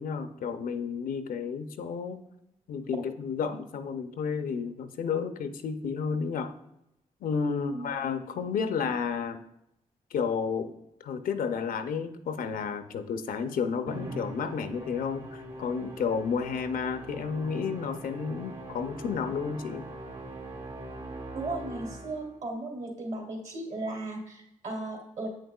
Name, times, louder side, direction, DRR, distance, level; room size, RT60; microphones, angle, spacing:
voice 1, 0.0-2.2 2.7-6.5 7.2-9.4 10.1-10.7 11.0-19.9, left 6 dB, 80° left, 9 dB, 0.5 m, -31 dB
voice 2, 7.5-7.9 21.3-25.3, right 2 dB, 60° right, -1 dB, 2.5 m, -36 dB
Musical instrument, 13.9-22.4, right 1 dB, 40° right, 1.5 m, -42 dB
8.5 x 6.4 x 2.3 m, 0.84 s
cardioid pair, 55°, 14 cm